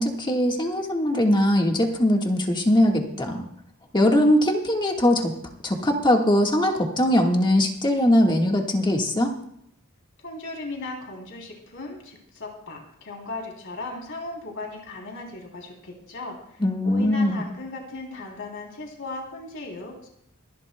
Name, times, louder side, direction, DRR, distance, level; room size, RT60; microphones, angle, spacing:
voice 1, 0.0-3.4 3.9-5.3 5.6-9.3 16.6-17.4, left 1 dB, 20° left, 2 dB, 1.6 m, -21 dB
voice 2, 10.2-20.1, left 2 dB, 60° left, 0 dB, 3.2 m, -37 dB
26.5 x 11.5 x 2.2 m, 0.74 s
head